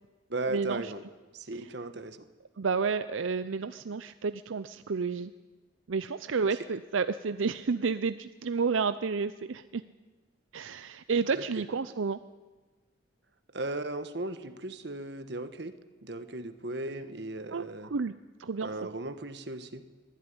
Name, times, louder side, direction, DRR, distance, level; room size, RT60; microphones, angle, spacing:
voice 1, 0.3-1.0 1.3-2.3 6.5-6.6 11.4-11.6 13.5-15.7 16.0-17.9 18.6-19.8, right 2 dB, 60° right, 10 dB, 1.3 m, -37 dB
voice 2, 2.6-5.3 5.9-9.8 10.5-12.2 17.5-18.1 18.4-18.7, right 5 dB, 80° right, 12 dB, 0.6 m, -30 dB
23.0 x 13.5 x 9.7 m, 1.3 s
head